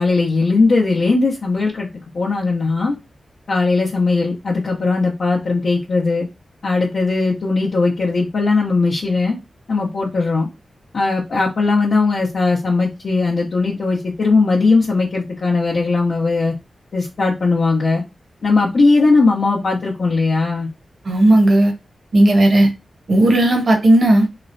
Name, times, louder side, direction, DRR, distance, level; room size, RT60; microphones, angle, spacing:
voice 1, 0.0-1.9 2.1-2.9 3.5-6.3 6.6-9.4 9.7-10.5 10.9-16.5 16.9-18.0 18.4-20.7, left 3 dB, 70° left, 0.6 m, -18 dB
voice 2, 21.0-21.7 22.1-22.7 23.1-24.3, right 1 dB, 65° right, 0.9 m, -13 dB
3.0 x 2.0 x 2.5 m
cardioid pair, 60°, 0 cm